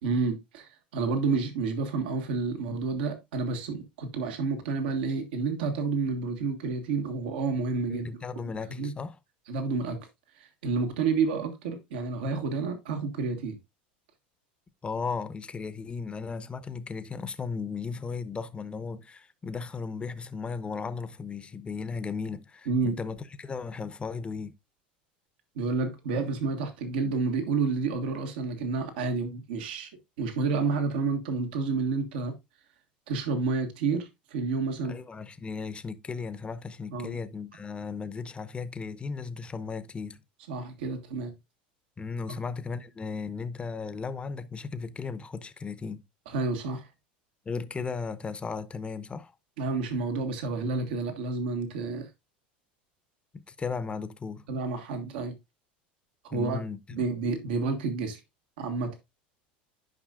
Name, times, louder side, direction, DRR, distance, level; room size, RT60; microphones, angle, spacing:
voice 1, 0.0-8.1 8.7-8.9 9.5-10.0 10.4-13.6 22.7-22.9 25.5-29.9 30.2-32.3 33.1-35.0 36.9-37.2 40.5-41.3 42.3-42.4 46.3-46.9 49.6-52.1 54.5-55.3 56.2-56.6 56.9-58.2 58.6-59.0, right 4 dB, 75° right, 1.6 m, -30 dB
voice 2, 7.9-9.2 14.8-24.6 34.8-40.2 42.0-46.0 47.5-49.3 53.3-54.4 56.3-57.1, left 5 dB, 20° left, 0.8 m, -36 dB
10.5 x 5.4 x 2.4 m
hypercardioid pair, 95°, 5 cm